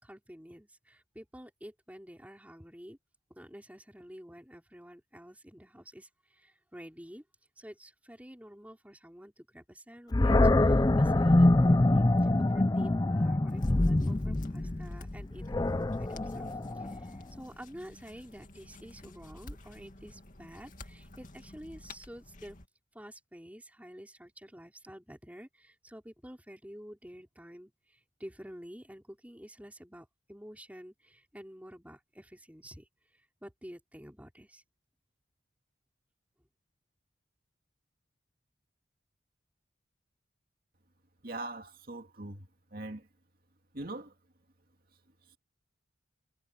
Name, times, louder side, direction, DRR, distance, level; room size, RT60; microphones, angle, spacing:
voice 1, 0.0-3.0 3.3-7.2 7.6-12.1 12.5-22.6 22.9-34.6, equal, 10° right, 4.7 m, -50 dB
Animal, 10.1-17.2, left 2 dB, 20° left, 0.4 m, -25 dB
sound 1, 13.5-22.7, left 2 dB, 45° left, 2.4 m, -51 dB
voice 2, 41.2-42.5 42.7-43.1 43.7-44.1, right 2 dB, 50° right, 2.2 m, -41 dB
head